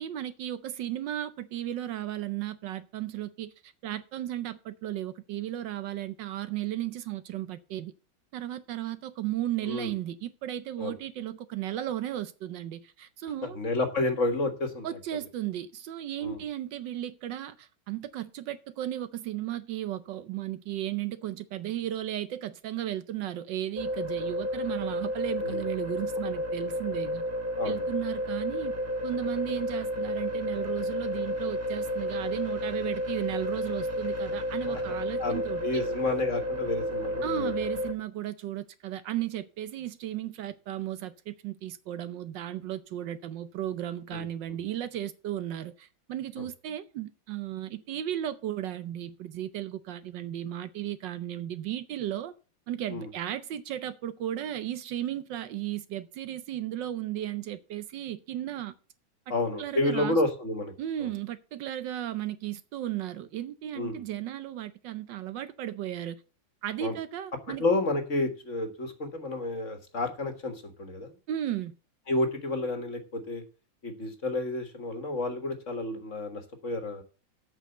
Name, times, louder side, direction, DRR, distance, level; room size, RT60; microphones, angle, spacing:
voice 1, 0.0-7.9 8.3-13.6 14.8-27.2 27.6-28.7 29.0-35.9 37.2-52.3 52.7-58.7 59.6-60.2 60.8-66.2 66.6-67.6 71.3-71.8, right 12 dB, 70° right, 1.3 m, -35 dB
voice 2, 13.4-14.9 16.2-16.4 25.4-25.6 27.6-27.8 34.7-37.5 44.1-44.6 46.4-46.5 52.9-53.1 59.3-60.7 63.8-64.0 66.8-67.0 67.5-71.1 72.1-73.4 73.8-77.0, left 2 dB, 40° left, 1.7 m, -30 dB
sound 1, 23.8-37.9, equal, 10° right, 0.9 m, -31 dB
8.2 x 6.3 x 7.9 m
omnidirectional pair, 2.1 m